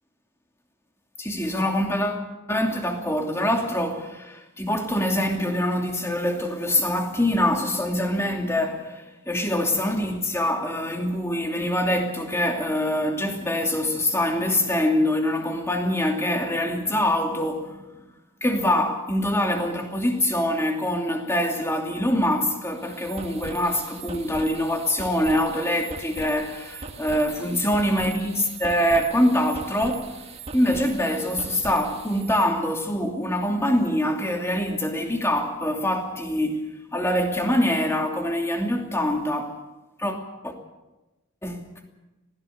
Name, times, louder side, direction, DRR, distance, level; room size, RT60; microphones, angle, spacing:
voice 1, 1.2-17.9 18.4-30.1 30.5-39.6 40.0-40.5 41.4-41.6, left 1 dB, 15° left, 2.7 m, -24 dB
sound 1, 22.6-32.4, right 3 dB, 30° right, 1.9 m, -40 dB
21.0 x 16.0 x 8.1 m
head